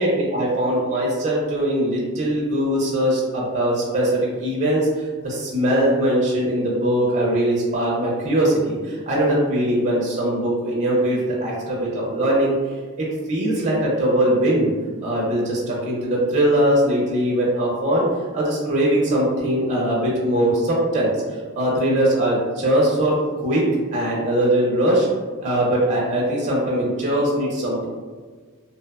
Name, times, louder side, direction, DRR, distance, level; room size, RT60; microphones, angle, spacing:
voice 1, 0.0-12.5 13.0-14.7 15.0-18.1 18.3-23.6 23.9-25.1 25.4-27.9, right 1 dB, 30° right, -4 dB, 0.4 m, -21 dB
2.7 x 2.0 x 2.2 m, 1.5 s
head